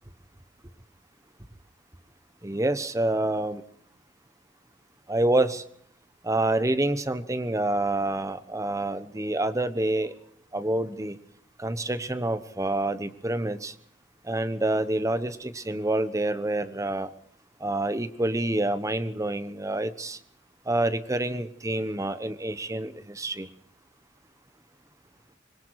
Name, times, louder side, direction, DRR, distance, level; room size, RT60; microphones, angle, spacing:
voice 1, 2.4-3.6 5.1-5.6 6.2-10.1 10.5-11.2 11.6-13.7 14.2-17.1 17.6-20.2 20.7-23.5, right 1 dB, 15° right, 12 dB, 1.1 m, -27 dB
25.5 x 21.5 x 4.8 m, 0.64 s
head